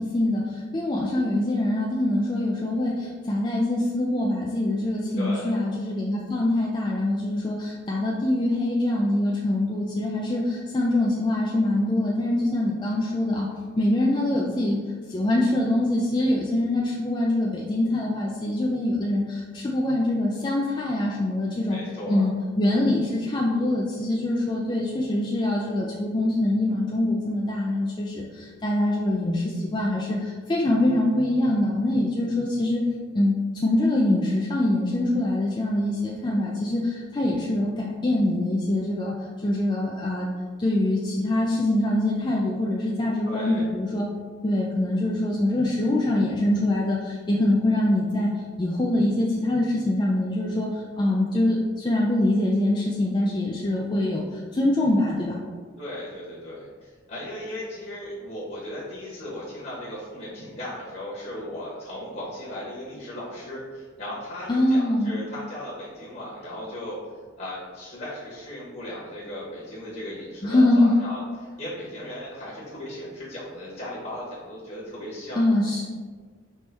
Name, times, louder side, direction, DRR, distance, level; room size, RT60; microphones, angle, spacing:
voice 1, 0.0-13.5 13.8-14.8 15.1-21.8 22.1-32.8 33.1-33.3 33.6-40.3 40.6-44.1 44.4-48.3 48.6-55.4 64.5-65.1 70.4-70.9 75.4-75.8, left 1 dB, 20° left, -3 dB, 0.3 m, -24 dB
voice 2, 5.1-5.6 21.7-22.3 43.2-43.7 55.8-67.0 67.4-75.4, left 1 dB, 40° left, -7 dB, 1.1 m, -37 dB
4.3 x 3.1 x 3.4 m, 1.5 s
head